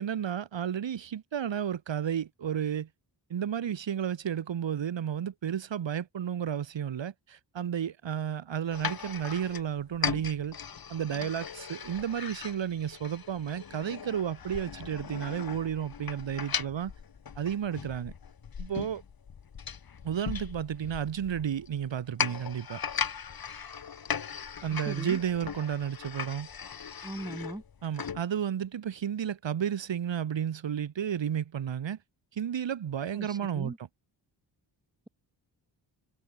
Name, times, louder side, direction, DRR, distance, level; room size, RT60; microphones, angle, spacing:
voice 1, 0.0-2.9 3.3-10.6 10.9-16.9 17.4-18.1 18.6-19.0 20.0-22.8 24.6-26.5 27.8-32.0 32.3-33.7, right 9 dB, 75° right, 3.6 m, -32 dB
sound 1, 8.7-28.2, left 7 dB, 50° left, 2.6 m, -38 dB
voice 2, 24.7-25.2 27.0-27.6 33.1-33.8, right 1 dB, 10° right, 7.7 m, -39 dB
wide cardioid pair, 110°, 45 cm